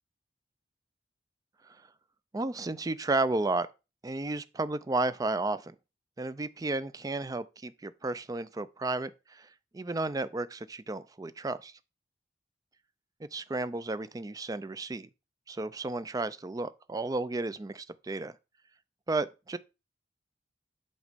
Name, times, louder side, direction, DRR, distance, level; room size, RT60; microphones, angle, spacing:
voice 1, 2.3-3.7 4.0-5.7 6.2-9.5 9.7-11.7 13.2-15.1 15.5-18.3 19.1-19.6, right 2 dB, 20° right, 0.4 m, -33 dB
8.1 x 3.1 x 5.1 m
head